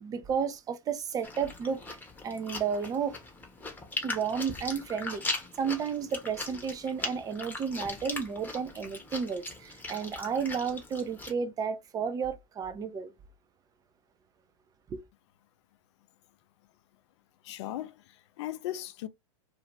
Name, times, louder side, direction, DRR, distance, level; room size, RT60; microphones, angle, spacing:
voice 1, 0.0-1.8 2.2-3.2 4.0-13.1 14.9-15.0, right 6 dB, 20° right, 0.4 m, -32 dB
Chewing mastication, 1.2-11.3, left 3 dB, 10° left, 0.8 m, -39 dB
voice 2, 17.4-19.1, left 13 dB, 60° left, 0.4 m, -38 dB
2.5 x 2.4 x 2.9 m
hypercardioid pair, 110°, 17 cm